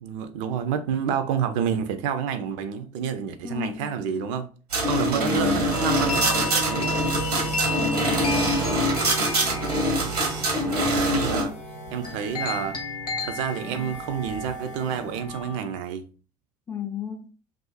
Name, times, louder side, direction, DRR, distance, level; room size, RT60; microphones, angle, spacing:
voice 1, 0.0-4.5 4.8-6.9 10.9-11.5 11.9-12.8 13.2-16.1, right 7 dB, 55° right, 0.4 m, -29 dB
voice 2, 3.4-3.9 5.1-5.7 7.8-8.6 16.7-17.3, left 8 dB, 15° left, 0.4 m, -33 dB
sound 1, 4.7-11.4, right 1 dB, 85° right, 0.7 m, -24 dB
sound 2, 5.7-15.6, left 1 dB, 85° left, 0.5 m, -32 dB
sound 3, 6.0-7.6 8.3-10.1 11.0-12.8 13.4-15.1, equal, 40° left, 0.7 m, -44 dB
2.4 x 2.4 x 2.3 m
figure-of-eight pair, 65°, 19 cm